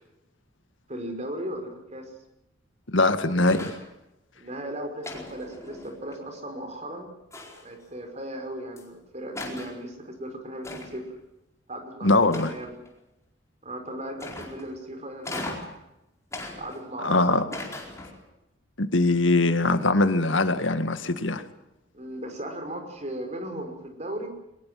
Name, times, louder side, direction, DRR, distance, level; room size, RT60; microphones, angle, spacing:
voice 1, 0.9-2.1 4.3-7.1 7.6-11.0 11.7-12.8 13.6-15.4 16.6-17.5 21.9-24.3, right 1 dB, 35° right, 5 dB, 5.6 m, -37 dB
voice 2, 2.9-3.7 12.0-12.5 17.0-17.4 18.8-21.4, left 2 dB, 85° left, 10 dB, 1.9 m, -22 dB
sound 1, 3.4-3.9 5.0-6.1 7.3-7.8 8.8-8.9 9.3-9.8 10.6-11.1 12.3-12.9 14.2-14.7 15.2-15.8 16.3-17.1 17.5-18.3, left 2 dB, 15° left, 4.5 m, -38 dB
22.5 x 21.0 x 7.8 m, 0.90 s
head